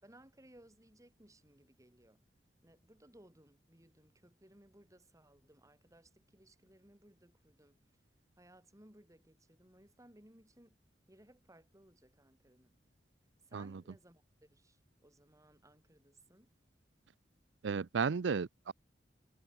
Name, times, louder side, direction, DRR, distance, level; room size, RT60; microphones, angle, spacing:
voice 1, 0.0-2.2 2.6-8.0 8.4-10.8 11.1-12.8 13.4-14.2 14.5-16.5, right 1 dB, 20° right, 4.0 m, -62 dB
voice 2, 17.6-18.7, right 5 dB, 90° right, 0.5 m, -34 dB
head